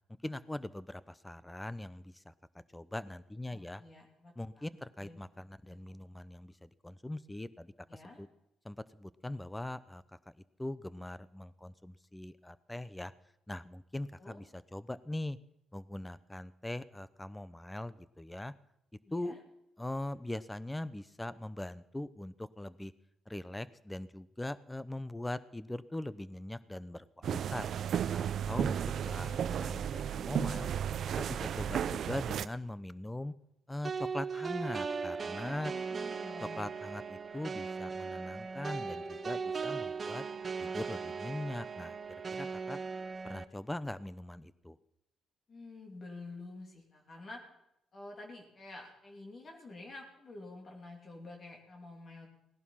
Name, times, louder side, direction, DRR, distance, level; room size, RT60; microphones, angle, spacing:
voice 1, 0.2-2.3 2.7-3.8 4.4-8.3 8.6-13.1 13.5-15.4 15.7-18.5 19.1-19.3 19.8-22.9 23.3-27.7 28.1-30.7 31.2-33.3 33.7-35.7 36.4-40.2 40.6-42.0 42.3-42.8 43.2-44.8, left 1 dB, 10° left, 16 dB, 0.7 m, -41 dB
voice 2, 3.5-4.3 5.0-5.2 5.7-5.8 7.9-8.2 14.2-14.4 19.1-19.4 35.4-36.7 45.5-47.4 47.9-52.3, left 2 dB, 40° left, 1 dB, 2.9 m, -49 dB
sound 1, 27.2-32.5, right 9 dB, 65° right, 0.5 m, -33 dB
sound 2, 33.8-43.4, right 5 dB, 35° right, 0.9 m, -38 dB
17.5 x 11.0 x 5.7 m, 0.81 s
cardioid pair, 90°, 0 cm